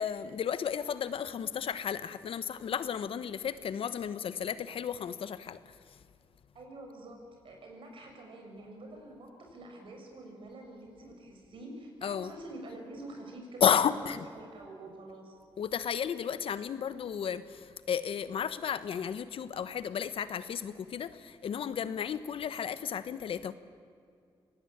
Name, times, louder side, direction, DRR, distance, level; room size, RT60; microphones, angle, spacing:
voice 1, 0.0-5.6 12.0-12.3 13.6-14.2 15.6-23.5, left 8 dB, 75° left, 14 dB, 1.1 m, -33 dB
voice 2, 6.5-15.4, right 1 dB, 65° right, 2 dB, 6.4 m, -47 dB
25.0 x 18.5 x 8.8 m, 2.3 s
cardioid pair, 100°, 10 cm